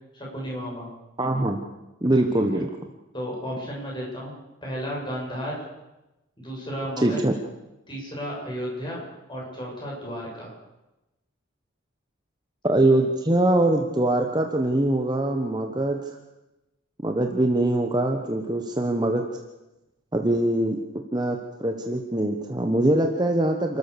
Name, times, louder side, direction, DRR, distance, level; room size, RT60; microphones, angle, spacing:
voice 1, 0.1-0.9 2.5-2.6 3.1-4.3 4.6-5.5 6.4-7.2 7.9-9.0 9.3-10.5, equal, 20° left, -3 dB, 7.7 m, -33 dB
voice 2, 1.2-1.6 2.0-2.8 7.0-7.3 12.6-16.2 17.0-19.2 20.1-20.8 21.1-23.8, right 1 dB, 20° right, 4 dB, 1.2 m, -23 dB
28.5 x 13.5 x 6.9 m, 0.98 s
head